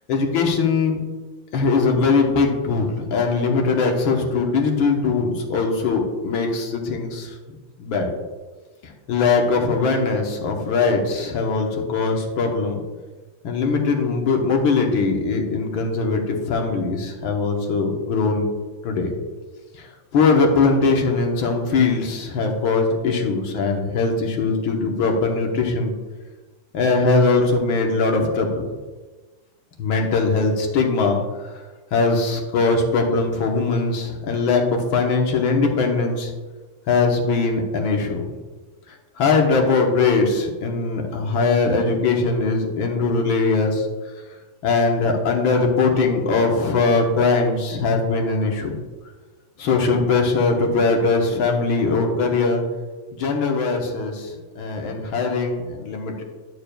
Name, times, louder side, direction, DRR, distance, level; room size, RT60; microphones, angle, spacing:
voice 1, 0.1-1.0 1.5-7.4 7.8-8.1 8.8-12.8 13.4-18.5 18.8-19.1 19.7-25.9 26.7-28.7 29.8-31.2 31.9-36.3 36.9-38.2 38.9-43.9 44.6-48.7 49.6-52.6 53.1-56.2, left 4 dB, 80° left, 2 dB, 1.9 m, -21 dB
11.5 x 6.8 x 2.3 m, 1.3 s
omnidirectional pair, 2.2 m